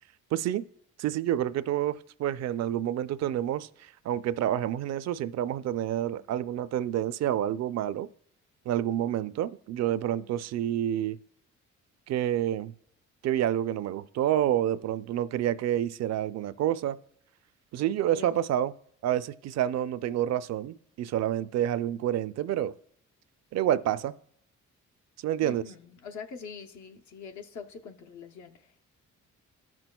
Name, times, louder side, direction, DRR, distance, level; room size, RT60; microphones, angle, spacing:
voice 1, 0.3-0.6 1.0-8.1 8.7-11.2 12.1-12.7 13.2-17.0 17.7-18.7 19.0-22.7 23.5-24.1 25.2-25.6, right 11 dB, 60° right, 0.4 m, -28 dB
voice 2, 25.4-28.9, left 5 dB, 75° left, 0.8 m, -44 dB
14.5 x 6.1 x 2.3 m
cardioid pair, 90°, 30 cm